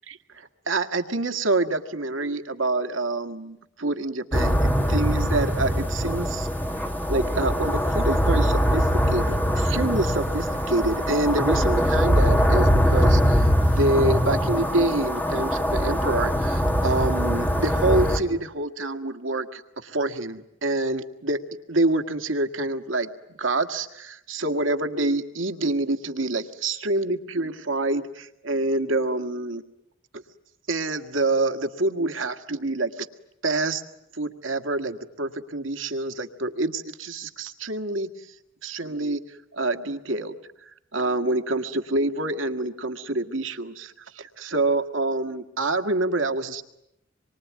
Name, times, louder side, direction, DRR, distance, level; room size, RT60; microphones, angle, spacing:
voice 1, 0.1-6.5 7.1-21.4 21.7-23.1 23.4-29.6 30.1-30.2 30.7-33.1 33.4-33.8 34.1-38.3 38.6-40.3 40.6-46.6, right 2 dB, 80° right, 7 dB, 1.8 m, -27 dB
sound 1, 4.3-18.2, equal, 10° left, 1.9 m, -22 dB
27.0 x 23.5 x 9.5 m, 0.82 s
head